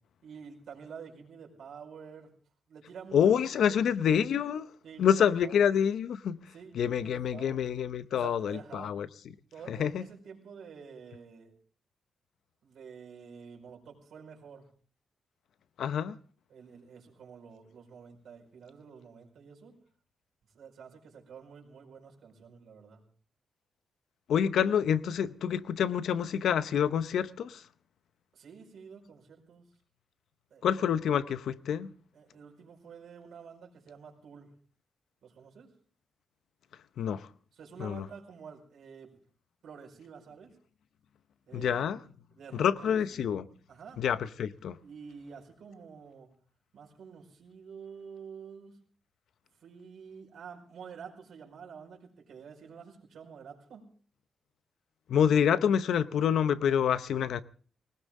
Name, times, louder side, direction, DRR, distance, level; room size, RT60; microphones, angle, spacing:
voice 1, 0.2-2.3 2.7-3.8 4.8-5.6 6.5-7.6 8.1-9.0 9.5-11.5 12.6-14.7 16.5-19.8 20.5-23.0 28.3-29.7 30.5-30.9 32.1-34.5 35.2-35.7 37.5-39.2 39.6-40.6 41.5-41.8 42.3-43.3 43.7-44.3 44.8-46.3 46.7-48.8 49.6-53.8, right 6 dB, 75° right, 4.9 m, -49 dB
voice 2, 3.1-4.7 5.0-6.4 6.7-9.1 9.7-10.0 15.8-16.2 24.3-27.6 30.6-31.9 37.0-37.3 37.8-38.1 41.5-42.0 42.5-43.5 44.0-44.8 55.1-57.4, left 8 dB, 80° left, 0.7 m, -27 dB
20.0 x 19.0 x 3.7 m
wide cardioid pair, 160°, 0 cm